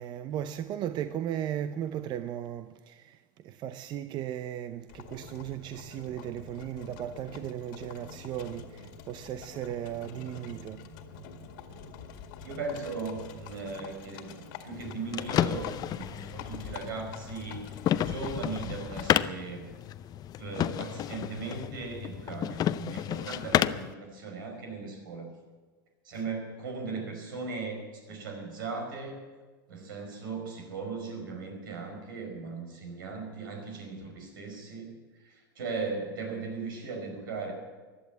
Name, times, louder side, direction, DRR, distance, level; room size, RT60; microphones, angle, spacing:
voice 1, 0.0-10.9 26.3-26.4, right 11 dB, 40° right, 0.7 m, -36 dB
Livestock farm animals working animals, 4.9-19.3, left 6 dB, 65° left, 2.0 m, -46 dB
voice 2, 12.4-19.6 20.4-25.3 26.0-29.2 29.7-37.5, right 4 dB, 80° right, 5.3 m, -38 dB
sound 1, 14.7-23.9, left 11 dB, 35° left, 0.6 m, -31 dB
15.5 x 11.0 x 8.2 m
hypercardioid pair, 105°, 11 cm